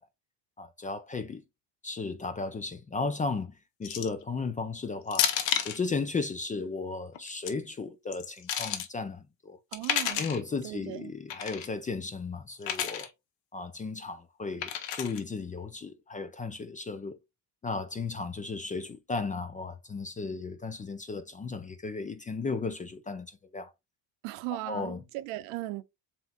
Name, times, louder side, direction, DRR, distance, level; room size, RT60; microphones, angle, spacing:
voice 1, 0.6-1.4 1.8-3.5 3.8-5.3 5.6-9.6 10.2-13.1 13.5-17.2 17.6-23.7 24.5-25.0, left 4 dB, 20° left, 0.3 m, -35 dB
sound 1, 3.8-4.2 5.1-5.8 7.1-7.5 8.1-8.9 9.7-10.4 11.3-11.7 12.6-13.1 14.6-15.2, left 9 dB, 70° left, 1.0 m, -31 dB
voice 2, 9.7-10.3 10.6-11.1 24.2-25.8, right 18 dB, 85° right, 0.7 m, -37 dB
7.3 x 3.0 x 2.3 m
cardioid pair, 120°, 47 cm